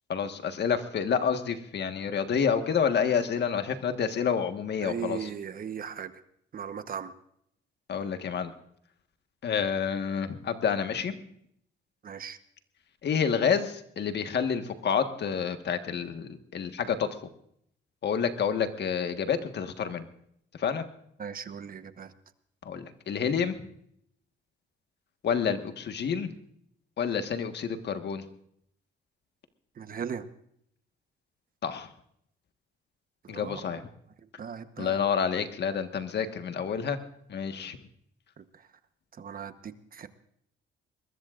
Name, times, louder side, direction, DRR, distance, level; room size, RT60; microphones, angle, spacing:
voice 1, 0.1-5.3 7.9-8.5 9.4-11.2 13.0-17.1 18.0-20.1 20.5-20.8 22.6-23.6 25.2-26.3 27.0-28.2 31.6-31.9 33.3-33.8 34.8-37.0 37.3-37.8, left 7 dB, 60° left, 7 dB, 1.6 m, -29 dB
voice 2, 4.8-6.1 6.5-7.1 12.0-12.4 21.2-22.1 29.8-30.3 33.2-33.8 34.4-35.0 38.4-38.7 39.1-40.1, right 7 dB, 45° right, 10 dB, 1.1 m, -38 dB
22.0 x 21.0 x 2.6 m, 0.70 s
cardioid pair, 90°, 20 cm